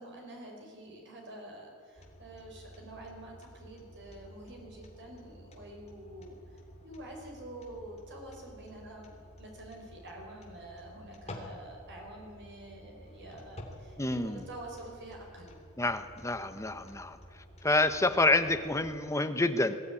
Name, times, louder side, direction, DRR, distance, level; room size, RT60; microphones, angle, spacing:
voice 1, 0.0-6.4 6.8-9.1 9.4-15.5, right 1 dB, 50° right, 1 dB, 5.2 m, -47 dB
sound 1, 2.0-19.0, equal, 30° left, 3.0 m, -51 dB
voice 2, 14.0-14.5 15.8-17.2 17.6-19.8, left 2 dB, 15° left, 9 dB, 1.0 m, -28 dB
21.5 x 14.5 x 9.7 m, 2.2 s
head